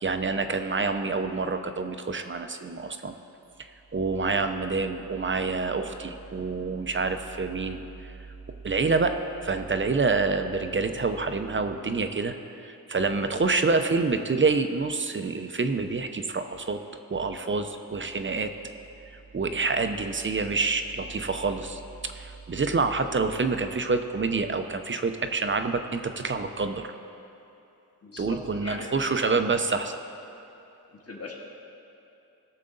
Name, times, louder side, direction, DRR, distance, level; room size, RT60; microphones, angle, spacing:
voice 1, 0.0-3.1 3.6-8.1 8.6-12.3 12.6-16.8 17.1-18.5 19.3-26.9 28.2-30.0, right 4 dB, 30° right, 7 dB, 0.6 m, -27 dB
voice 2, 28.0-28.9 29.2-29.3 31.1-31.3, left 4 dB, 40° left, -1 dB, 1.6 m, -39 dB
17.0 x 6.6 x 3.9 m, 2.8 s
wide cardioid pair, 95°, 38 cm